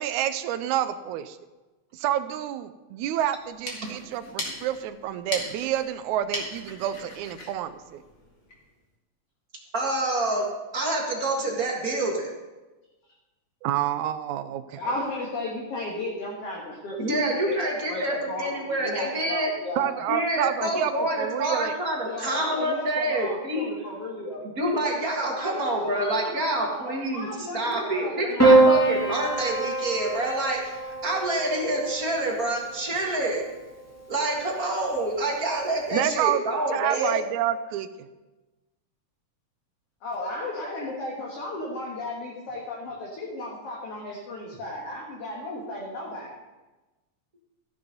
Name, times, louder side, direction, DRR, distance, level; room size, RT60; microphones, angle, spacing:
voice 1, 0.0-1.4 2.0-8.0 13.6-14.8 19.8-20.9 21.2-21.7 35.9-36.4 36.7-38.1, right 11 dB, 85° right, 11 dB, 2.0 m, -28 dB
sound 1, 3.4-8.7, left 2 dB, 35° left, 2.2 m, -38 dB
voice 2, 9.7-10.5 10.7-12.3 17.0-19.5 20.1-23.7 24.6-33.5 34.1-37.2, right 1 dB, 35° right, -1 dB, 1.8 m, -27 dB
voice 3, 14.8-19.9 22.0-24.4 25.4-28.7 40.0-46.3, left 2 dB, 60° left, -3 dB, 2.4 m, -35 dB
Piano, 28.4-32.9 34.1-34.7, right 2 dB, 5° left, 1.6 m, -23 dB
14.5 x 6.9 x 5.3 m, 1.1 s
omnidirectional pair, 3.3 m